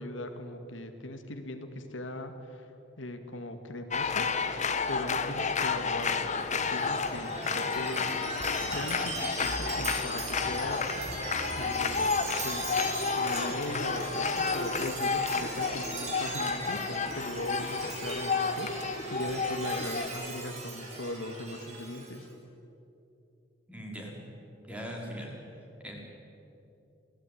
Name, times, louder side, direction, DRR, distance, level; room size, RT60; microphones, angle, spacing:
voice 1, 0.0-2.6 3.0-4.3 4.9-8.4 8.7-10.9 11.6-12.1 12.4-12.8 13.2-18.7 19.1-22.3, left 1 dB, 85° left, 6 dB, 2.2 m, -39 dB
sound 1, 3.9-20.1, left 5 dB, 40° left, 1.3 m, -31 dB
Chime, 6.4-22.2, right 2 dB, 35° right, 5.1 m, -39 dB
voice 2, 23.7-24.1 24.6-25.3 25.8-26.0, equal, 5° right, -2 dB, 5.2 m, -40 dB
27.0 x 18.0 x 9.5 m, 2.7 s
head